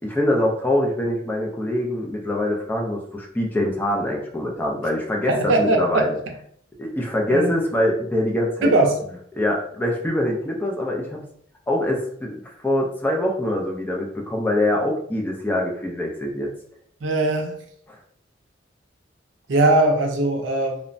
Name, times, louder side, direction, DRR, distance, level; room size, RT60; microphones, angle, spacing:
voice 1, 0.0-6.2 6.8-8.7 9.4-11.2 11.7-16.5 17.9-18.0, left 1 dB, 10° left, -1 dB, 0.4 m, -24 dB
voice 2, 5.3-6.3 7.3-7.6 8.6-9.0 17.0-17.6 19.5-20.8, right 2 dB, 75° right, 3 dB, 0.5 m, -20 dB
3.0 x 2.0 x 2.5 m, 0.65 s
head